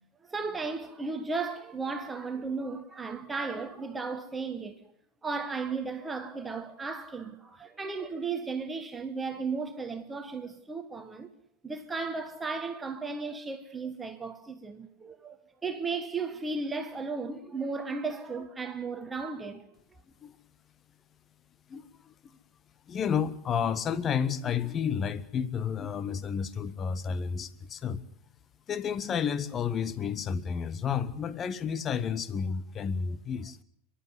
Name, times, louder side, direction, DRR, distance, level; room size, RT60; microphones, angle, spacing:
voice 1, 0.3-4.8 5.2-11.3 11.6-15.4 15.6-19.6, right 4 dB, 10° right, 1.5 m, -35 dB
voice 2, 21.7-22.1 22.9-28.0 28.7-33.6, left 7 dB, 25° left, 1.2 m, -31 dB
30.0 x 11.5 x 9.6 m
figure-of-eight pair, 90°, 0 cm